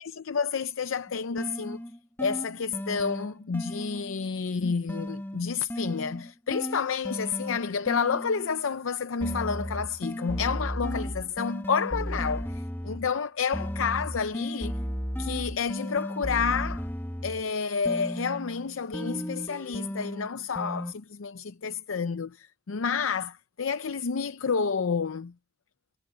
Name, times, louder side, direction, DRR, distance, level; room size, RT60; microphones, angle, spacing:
voice 1, 0.0-1.8 2.2-14.7 15.2-16.9 17.2-25.3, left 5 dB, 90° left, 0.6 m, -30 dB
sound 1, 1.1-4.3 4.9-8.6 9.2-13.2 13.5-17.5 17.8-20.9, equal, 10° left, 1.4 m, -35 dB
head